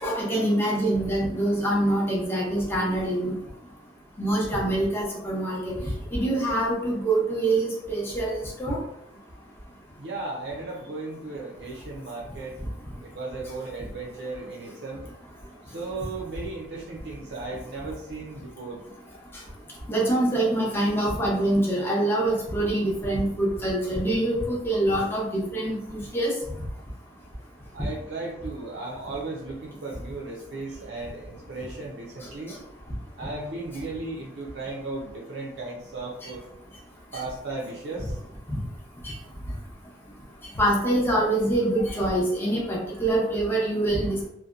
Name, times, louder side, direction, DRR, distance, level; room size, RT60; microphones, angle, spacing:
voice 1, 0.0-3.3 4.2-5.7 6.1-8.8 19.9-26.3 40.6-44.3, right 1 dB, 15° left, -4 dB, 0.6 m, -25 dB
voice 2, 10.0-12.5 13.0-15.0 15.7-18.8 27.7-32.6 33.2-36.4 37.1-38.1, right 3 dB, 70° right, -3 dB, 0.5 m, -36 dB
2.7 x 2.1 x 2.4 m, 0.76 s
head